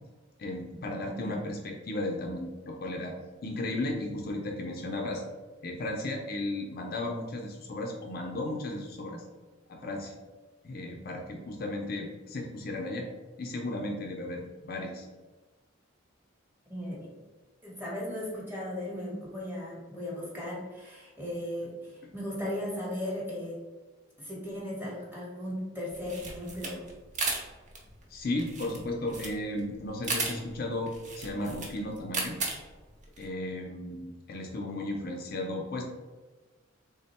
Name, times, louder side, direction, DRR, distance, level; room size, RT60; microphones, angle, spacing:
voice 1, 0.4-3.1 3.4-5.2 5.6-9.2 9.7-10.1 10.6-13.1 13.4-15.1 28.1-32.4 33.2-35.8, left 1 dB, 45° left, 1 dB, 0.4 m, -35 dB
voice 2, 1.1-1.4 16.7-17.1 17.6-23.6 24.2-26.9, left 1 dB, 10° right, -5 dB, 0.9 m, -37 dB
sound 1, 25.9-33.3, right 3 dB, 40° right, 0.6 m, -36 dB
3.4 x 2.1 x 4.1 m, 1.3 s
head